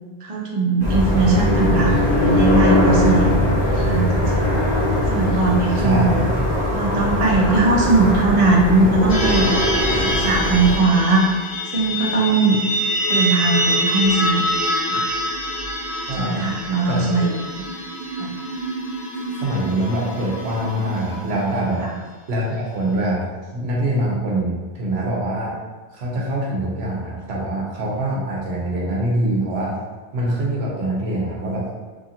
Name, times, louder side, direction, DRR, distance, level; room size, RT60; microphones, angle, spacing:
voice 1, 0.2-4.5 5.1-6.2 6.7-9.5 10.0-11.3 11.7-12.6 13.1-14.4 14.9-15.1 16.2-17.3 17.6-17.7 18.1-18.3 21.8-21.9, right 3 dB, 50° right, -2 dB, 0.4 m, -19 dB
sound 1, 0.8-10.8, left 1 dB, 10° right, 1.1 m, -20 dB
voice 2, 5.8-6.3 16.0-16.5 16.9-17.3 19.4-21.9 22.3-23.3 23.5-25.6 25.9-29.8 30.1-31.7, right 1 dB, 70° right, -3 dB, 0.9 m, -24 dB
sound 2, 9.1-21.6, equal, 60° left, 1.1 m, -25 dB
2.7 x 2.4 x 2.7 m, 1.3 s
omnidirectional pair, 1.2 m